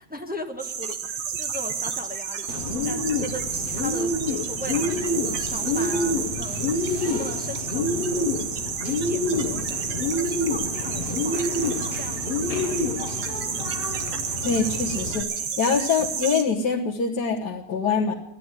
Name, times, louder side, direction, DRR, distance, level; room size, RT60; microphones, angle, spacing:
voice 1, 0.0-2.5 2.8-8.6 9.1-13.8, left 1 dB, 5° right, 3 dB, 1.0 m, -39 dB
sound 1, 0.6-16.4, right 7 dB, 70° right, 1.8 m, -31 dB
Bird, 2.5-15.2, left 2 dB, 30° left, 1.2 m, -28 dB
voice 2, 14.4-18.1, left 5 dB, 60° left, -4 dB, 1.7 m, -24 dB
12.5 x 10.5 x 9.7 m, 0.90 s
omnidirectional pair, 2.1 m